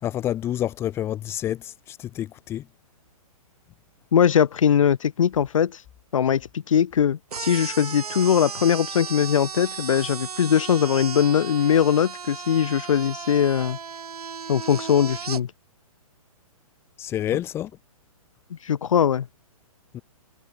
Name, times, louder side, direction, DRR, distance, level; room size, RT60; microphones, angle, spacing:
voice 1, 0.0-2.7 17.0-17.7 19.9-20.0, left 11 dB, 15° left, 4.7 m, -28 dB
voice 2, 4.1-5.8 6.1-13.8 14.5-15.5 18.5-19.3, left 8 dB, 60° left, 2.2 m, -21 dB
sound 1, 7.3-15.4, right 6 dB, 90° right, 5.6 m, -35 dB
hypercardioid pair, 170°, 19 cm